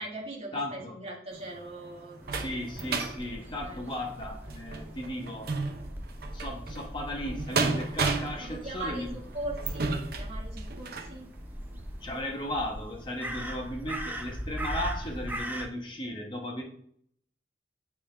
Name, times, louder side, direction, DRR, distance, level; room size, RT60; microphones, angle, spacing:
voice 1, 0.0-2.7 3.3-3.9 8.4-11.3, right 2 dB, 35° right, -2 dB, 1.4 m, -41 dB
voice 2, 0.5-0.9 2.3-5.5 6.3-9.1 12.0-16.6, left 1 dB, 25° left, 0 dB, 1.1 m, -36 dB
sound 1, 1.3-11.2 11.7-11.8 12.2-12.3, right 4 dB, 60° right, 0.7 m, -34 dB
Crow, 2.2-15.7, equal, 10° right, 0.5 m, -40 dB
8.4 x 3.4 x 3.3 m, 0.64 s
head